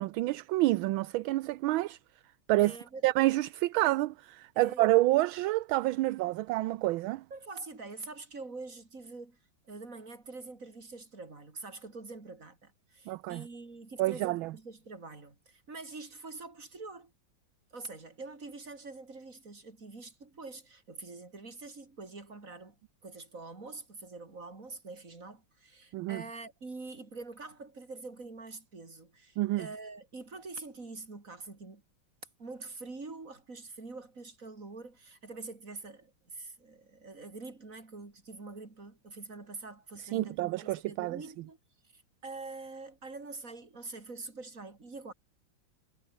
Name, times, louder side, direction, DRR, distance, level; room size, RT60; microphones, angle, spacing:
voice 1, 0.0-2.0 2.5-2.8 3.0-7.2 13.1-13.5 14.0-14.5 25.9-26.2 29.4-29.7 40.1-41.2, right 18 dB, 80° right, 1.4 m, -28 dB
voice 2, 2.6-3.0 4.6-4.8 7.3-9.4 9.6-17.1 17.7-22.8 23.0-31.8 32.4-41.6 41.8-45.1, right 3 dB, 40° right, 4.2 m, -45 dB
omnidirectional pair, 2.3 m